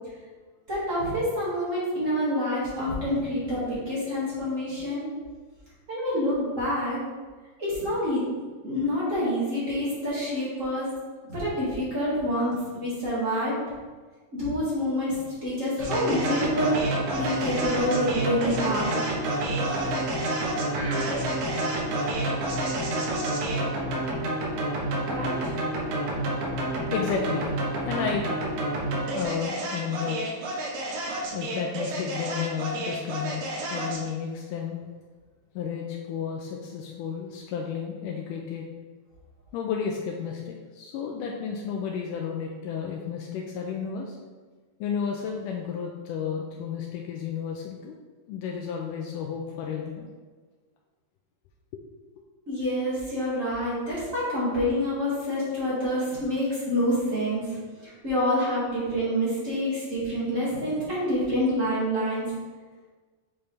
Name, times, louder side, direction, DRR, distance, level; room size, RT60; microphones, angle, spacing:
voice 1, 0.7-5.1 5.9-7.0 7.6-8.2 8.6-10.9 11.3-13.6 14.3-15.1 15.4-16.8 17.1-19.0 25.1-25.5 52.5-57.6 57.8-62.3, equal, 30° right, -8 dB, 1.8 m, -27 dB
sound 1, 15.8-34.1, right 1 dB, 90° right, 2.9 m, -29 dB
voice 2, 26.9-27.6 27.9-28.4 29.1-30.4 31.2-34.8 35.6-38.7 39.5-44.2 44.8-48.0 48.3-50.1 51.7-51.8, left 7 dB, 80° left, 0 dB, 2.1 m, -32 dB
7.1 x 5.3 x 3.3 m, 1.4 s
omnidirectional pair, 3.9 m